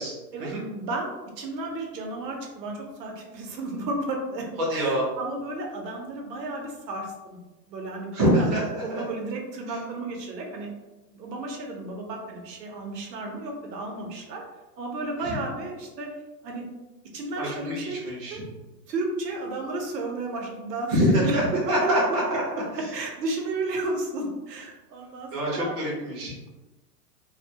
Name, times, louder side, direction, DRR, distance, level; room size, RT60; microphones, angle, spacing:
voice 1, 0.3-4.4 4.7-7.4 7.7-8.6 8.8-10.7 11.1-14.4 14.8-16.1 16.4-16.6 17.1-18.0 18.3-18.4 18.9-21.9 22.9-25.7, right 2 dB, 80° right, 1 dB, 0.8 m, -33 dB
voice 2, 4.7-5.1 8.1-9.0 15.2-15.4 17.4-18.4 20.9-22.0 22.3-22.4 22.7-22.8 25.3-26.3, equal, 25° right, -5 dB, 0.5 m, -25 dB
2.2 x 2.2 x 2.7 m, 1.1 s
hypercardioid pair, 150°, 49 cm